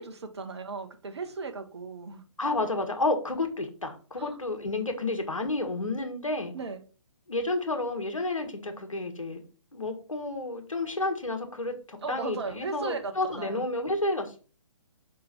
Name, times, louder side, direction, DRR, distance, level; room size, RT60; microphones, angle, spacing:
voice 1, 0.0-2.2 4.2-4.4 6.5-6.8 12.0-13.6, right 4 dB, 55° right, 6 dB, 1.1 m, -37 dB
voice 2, 2.4-6.5 7.3-9.4 9.7-14.4, left 2 dB, 80° left, 5 dB, 1.6 m, -30 dB
5.1 x 4.6 x 4.3 m, 0.37 s
figure-of-eight pair, 135°, 17 cm